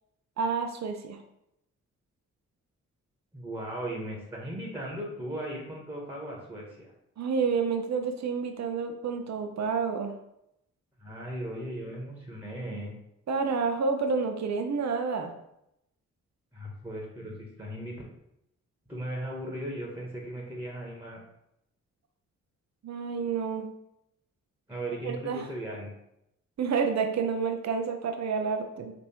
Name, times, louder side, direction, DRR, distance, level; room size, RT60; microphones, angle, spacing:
voice 1, 0.4-1.2 7.2-10.1 13.3-15.3 22.8-23.7 25.0-25.5 26.6-28.9, right 5 dB, 45° right, 5 dB, 0.7 m, -29 dB
voice 2, 3.3-6.9 11.0-12.9 16.5-18.0 18.9-21.2 24.7-25.9, right 1 dB, 5° right, -2 dB, 1.5 m, -37 dB
3.5 x 3.0 x 4.5 m, 0.81 s
hypercardioid pair, 40°, 37 cm